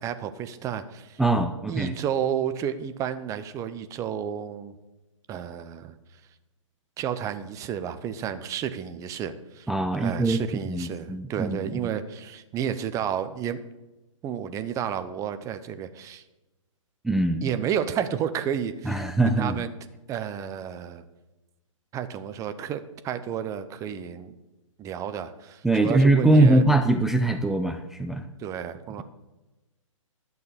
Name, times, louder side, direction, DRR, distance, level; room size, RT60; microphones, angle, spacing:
voice 1, 0.0-1.2 1.7-4.7 5.3-5.9 7.0-13.6 14.2-16.2 17.4-18.9 19.2-19.7 20.1-21.0 21.9-24.3 24.8-26.6 28.4-29.0, right 9 dB, 20° right, 11 dB, 0.8 m, -31 dB
voice 2, 1.2-2.0 9.7-10.4 10.7-11.8 17.0-17.5 18.8-19.6 25.6-28.3, right 2 dB, ahead, 7 dB, 0.3 m, -22 dB
11.5 x 6.7 x 8.4 m, 1.0 s
figure-of-eight pair, 125°, 17 cm